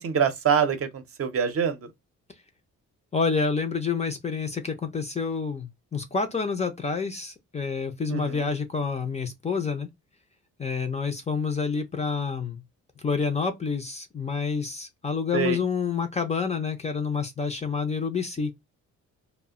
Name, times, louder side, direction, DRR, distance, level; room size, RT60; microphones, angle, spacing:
voice 1, 0.0-1.9 8.1-8.5 15.3-15.6, right 7 dB, 45° right, 0.6 m, -25 dB
voice 2, 3.1-9.9 10.6-12.6 13.0-18.5, left 5 dB, 20° left, 0.5 m, -28 dB
2.1 x 2.1 x 3.5 m
cardioid pair, 115°, 31 cm